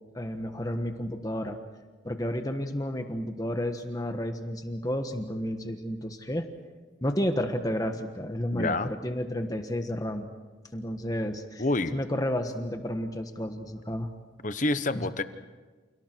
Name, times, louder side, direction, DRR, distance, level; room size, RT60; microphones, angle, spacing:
voice 1, 0.1-1.6 2.0-6.5 7.0-10.3 10.7-11.6 11.9-14.1 14.9-15.1, equal, 20° left, 6 dB, 1.4 m, -31 dB
voice 2, 8.5-8.9 11.6-12.0 14.4-15.2, left 2 dB, 40° left, 11 dB, 1.0 m, -27 dB
30.0 x 29.0 x 4.6 m, 1.3 s
head